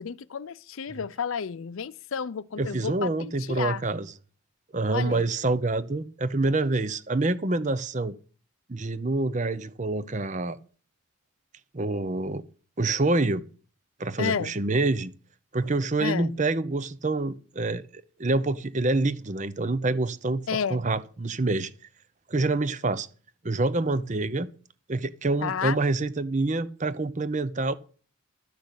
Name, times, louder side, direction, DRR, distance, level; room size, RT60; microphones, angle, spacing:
voice 1, 0.0-3.8 4.9-5.3 14.2-14.5 16.0-16.4 20.5-20.8 25.4-25.8, left 6 dB, 70° left, 0.5 m, -31 dB
voice 2, 2.6-4.1 4.7-8.2 8.7-10.6 11.7-12.4 12.8-13.4 14.0-15.1 15.5-21.7 22.3-23.1 23.4-24.5 24.9-27.7, right 2 dB, 35° right, 0.7 m, -26 dB
12.0 x 6.2 x 8.0 m
head